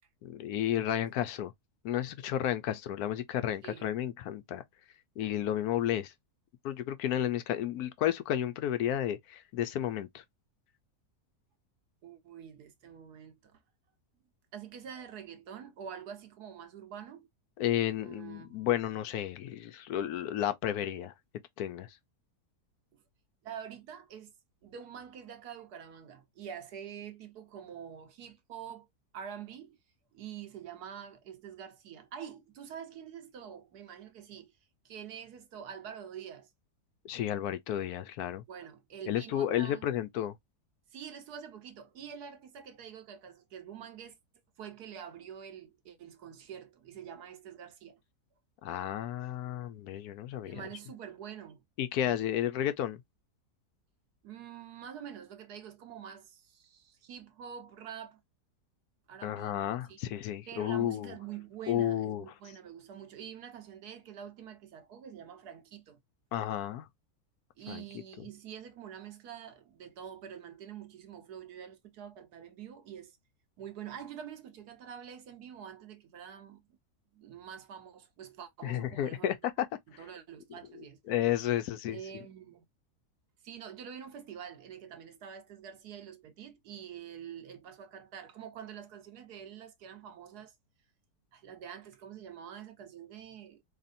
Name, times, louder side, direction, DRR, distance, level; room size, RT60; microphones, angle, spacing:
voice 1, 0.2-1.5 1.8-4.6 5.2-6.1 6.6-10.2 17.6-21.1 21.6-22.0 37.0-38.4 39.1-40.4 48.6-50.6 51.8-53.0 59.2-61.1 61.7-62.3 66.3-66.9 67.7-67.8 68.2-68.3 78.6-79.7 81.1-82.0, left 11 dB, 75° left, 1.0 m, -32 dB
voice 2, 12.0-13.6 14.5-17.3 18.0-18.7 22.9-23.0 23.4-24.3 24.6-28.9 29.1-29.8 30.1-34.6 34.8-36.5 38.5-39.9 40.9-44.2 44.6-48.0 50.4-51.6 54.2-58.2 59.1-59.6 59.9-60.0 60.5-66.0 67.6-73.2 73.6-76.6 77.1-79.4 80.0-81.0 81.9-82.6 83.4-90.5 91.3-93.6, right 8 dB, 75° right, 1.4 m, -46 dB
4.1 x 3.3 x 2.5 m
omnidirectional pair, 1.7 m